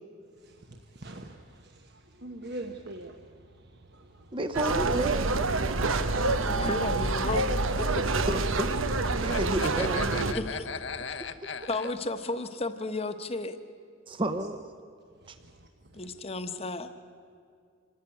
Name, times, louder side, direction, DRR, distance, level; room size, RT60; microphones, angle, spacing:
voice 1, 0.4-1.9 2.2-3.2 3.9-4.3 15.4-15.5 15.9-16.1, right 1 dB, 55° right, 4 dB, 1.1 m, -43 dB
voice 2, 4.3-5.4 8.0-8.9 9.2-10.2 14.1-14.6 15.3-15.4, right 1 dB, 25° right, 8 dB, 0.8 m, -31 dB
sound 1, 4.5-10.3, right 3 dB, 90° right, 1.1 m, -27 dB
voice 3, 6.4-7.8 10.3-10.7 11.7-13.6 15.9-16.9, left 2 dB, 30° left, 9 dB, 1.1 m, -33 dB
voice 4, 9.3-11.9, left 6 dB, 60° left, 9 dB, 1.0 m, -38 dB
26.0 x 14.0 x 9.9 m, 2.2 s
head